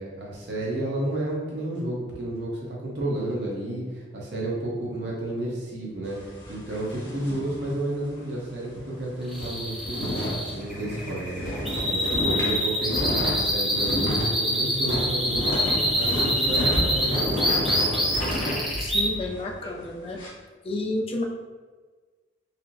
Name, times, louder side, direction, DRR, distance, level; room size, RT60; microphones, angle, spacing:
voice 1, 0.0-11.5 11.8-15.6 15.9-17.5 18.4-18.6, right 1 dB, 65° right, -4 dB, 0.8 m, -31 dB
sound 1, 6.0-8.3 8.6-8.8 9.1-20.3, equal, 75° left, 1.1 m, -31 dB
sound 2, 9.3-19.0, equal, ahead, 0.6 m, -26 dB
voice 2, 18.8-20.2 20.6-21.2, left 2 dB, 30° left, 1 dB, 0.3 m, -30 dB
4.2 x 2.0 x 2.6 m, 1.4 s
head